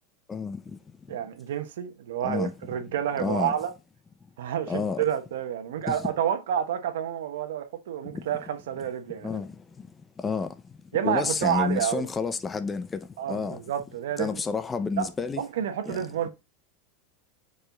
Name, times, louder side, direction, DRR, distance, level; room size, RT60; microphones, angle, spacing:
voice 1, 0.3-0.8 2.2-2.5 3.2-3.5 4.7-5.0 5.9-6.1 8.1-8.2 9.2-9.9 10.2-10.5 11.0-13.6 14.2-15.4 15.8-16.1, left 5 dB, 20° left, 0.8 m, -30 dB
voice 2, 1.1-3.7 4.4-9.4 10.9-12.1 13.2-14.4 15.0-15.1 15.4-16.3, right 9 dB, 80° right, 1.3 m, -29 dB
5.0 x 4.6 x 5.9 m
hypercardioid pair, 110°, 0 cm